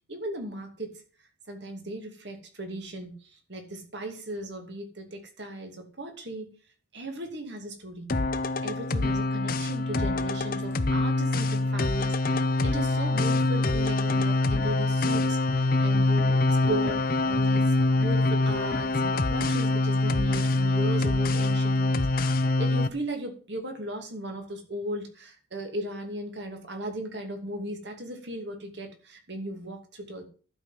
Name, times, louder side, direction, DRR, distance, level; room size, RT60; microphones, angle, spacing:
voice 1, 0.1-1.0 1.5-6.5 6.9-8.1 8.6-30.3, right 1 dB, 55° right, 4 dB, 2.6 m, -37 dB
sound 1, 8.1-22.9, left 2 dB, 45° left, 0.8 m, -25 dB
12.0 x 5.6 x 7.5 m, 0.39 s
head